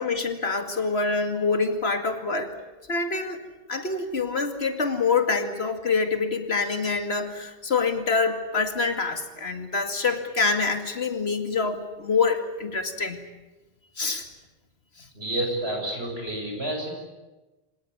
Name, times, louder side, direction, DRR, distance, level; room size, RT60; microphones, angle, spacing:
voice 1, 0.0-2.6 2.9-3.4 3.7-13.2 14.0-14.3 15.0-15.1, left 4 dB, 85° left, 7 dB, 2.5 m, -26 dB
voice 2, 15.1-16.9, right 1 dB, 80° right, 2 dB, 6.6 m, -29 dB
26.0 x 18.5 x 9.7 m, 1.1 s
omnidirectional pair, 1.0 m